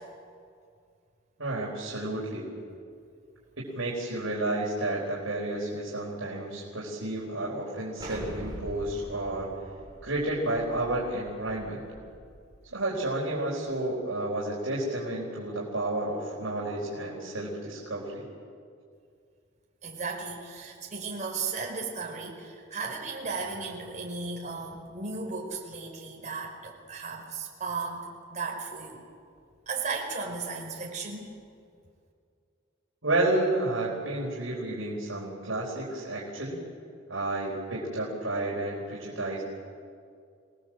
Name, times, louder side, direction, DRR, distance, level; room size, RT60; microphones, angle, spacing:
voice 1, 1.4-2.5 3.6-9.5 10.0-11.8 12.7-18.3 33.0-36.6 37.1-39.4, right 2 dB, 80° right, -5 dB, 4.7 m, -31 dB
Explosion, 8.0-12.7, equal, 20° right, 5.1 m, -44 dB
voice 2, 19.8-29.0 29.7-31.3, right 4 dB, 40° right, 0 dB, 4.9 m, -35 dB
26.5 x 19.5 x 7.7 m, 2.3 s
head